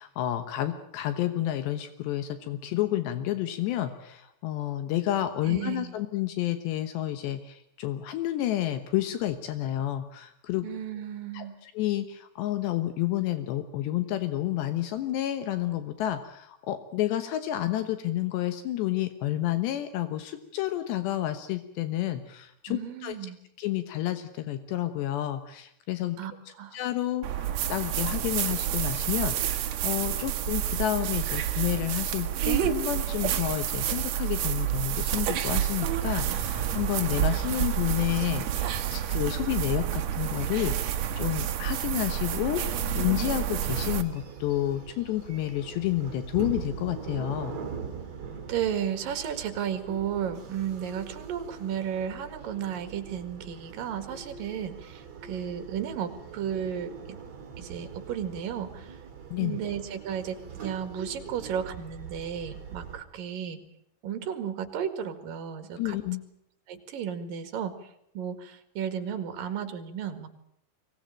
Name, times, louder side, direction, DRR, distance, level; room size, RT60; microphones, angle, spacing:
voice 1, 0.0-10.7 11.3-23.2 23.6-26.2 26.7-47.6 59.3-59.6 65.8-66.2, left 13 dB, 80° left, 10 dB, 3.3 m, -30 dB
voice 2, 5.4-5.9 10.6-11.6 22.7-23.4 26.2-26.3 26.6-26.8 48.5-57.2 57.6-59.0 59.4-63.6 64.0-66.0 66.7-67.9 68.1-70.3, right 8 dB, 60° right, 10 dB, 3.3 m, -34 dB
sound 1, 27.2-44.0, right 10 dB, 75° right, 1.6 m, -29 dB
sound 2, 43.7-63.0, right 6 dB, 40° right, 3.8 m, -42 dB
23.5 x 19.0 x 8.9 m, 0.73 s
omnidirectional pair, 5.0 m